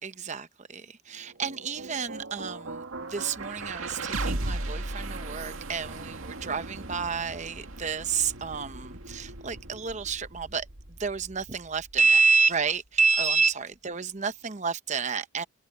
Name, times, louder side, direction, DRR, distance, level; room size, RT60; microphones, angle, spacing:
voice 1, 0.0-15.4, right 5 dB, 35° right, 0.8 m, -29 dB
sound 1, 1.1-13.2, right 2 dB, 80° right, 2.2 m, -38 dB
head